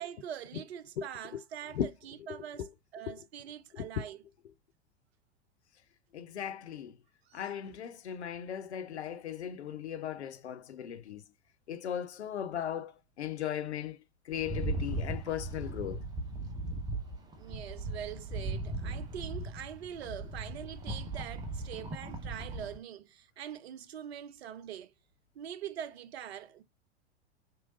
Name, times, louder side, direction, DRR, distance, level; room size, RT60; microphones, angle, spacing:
voice 1, 0.0-4.2 7.3-7.8 17.4-24.9 25.3-26.6, right 9 dB, 65° right, 0.5 m, -43 dB
voice 2, 2.3-2.7 3.1-3.2 3.7-4.0 6.1-6.9 7.3-11.2 11.7-12.9 13.2-14.0 14.3-16.0, left 9 dB, 75° left, 0.5 m, -37 dB
Rattle, 14.3-22.8, right 2 dB, 10° right, 0.6 m, -38 dB
3.0 x 2.7 x 2.7 m
figure-of-eight pair, 90°, 34 cm